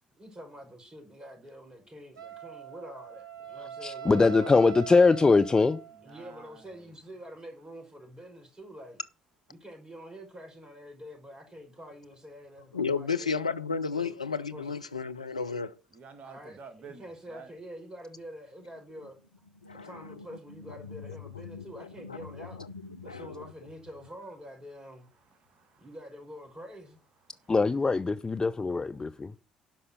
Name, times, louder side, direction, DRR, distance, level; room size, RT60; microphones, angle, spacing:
voice 1, 0.1-4.6 6.0-9.0 9.5-13.4 13.9-14.1 14.5-14.8 16.2-19.2 19.8-22.6 23.0-25.1 25.8-27.0, equal, 25° right, 5.2 m, -46 dB
Wind instrument woodwind instrument, 2.2-6.1, right 8 dB, 70° right, 1.5 m, -42 dB
voice 2, 3.8-5.8 27.5-29.3, left 4 dB, 20° left, 0.5 m, -22 dB
voice 3, 6.0-6.9 15.9-17.5 25.3-25.9 27.3-27.5, right 5 dB, 45° right, 1.8 m, -50 dB
voice 4, 12.7-15.8 19.6-20.0 21.4-22.7 23.0-23.4, left 5 dB, 85° left, 0.4 m, -33 dB
11.5 x 5.6 x 6.9 m
figure-of-eight pair, 50°, 3 cm